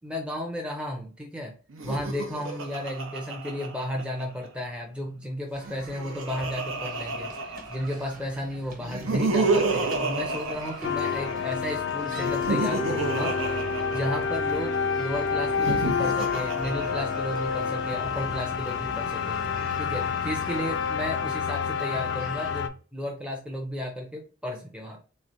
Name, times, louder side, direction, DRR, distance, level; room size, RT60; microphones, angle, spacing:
voice 1, 0.0-1.5 1.8-13.6 13.9-19.4 19.8-25.1, left 1 dB, 5° right, 0 dB, 0.5 m, -34 dB
Laughter, 1.7-4.5 5.6-8.1 8.8-11.5 12.2-14.6 15.5-17.6, right 3 dB, 90° right, 0.7 m, -30 dB
sound 1, 5.5-22.6, right 1 dB, 40° right, 1.2 m, -45 dB
sound 2, 10.8-22.7, left 6 dB, 65° left, 0.4 m, -28 dB
3.6 x 3.2 x 2.5 m, 0.37 s
head